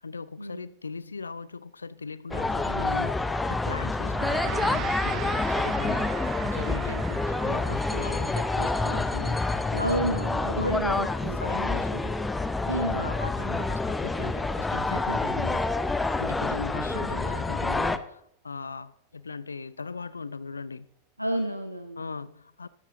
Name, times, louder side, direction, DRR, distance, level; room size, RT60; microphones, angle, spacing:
voice 1, 0.0-10.3 10.6-11.0 11.4-12.1 12.9-15.6 16.2-20.9 22.0-22.7, left 4 dB, 75° left, 0.5 m, -38 dB
sound 1, 2.3-18.0, left 3 dB, 10° left, 0.7 m, -28 dB
Gong, 4.1-13.6, right 11 dB, 30° right, 0.8 m, -41 dB
voice 2, 9.8-11.5 12.7-13.1 16.8-17.3 21.2-22.0, right 1 dB, 90° right, 0.8 m, -31 dB
13.0 x 12.0 x 3.9 m
figure-of-eight pair, 90°, 0 cm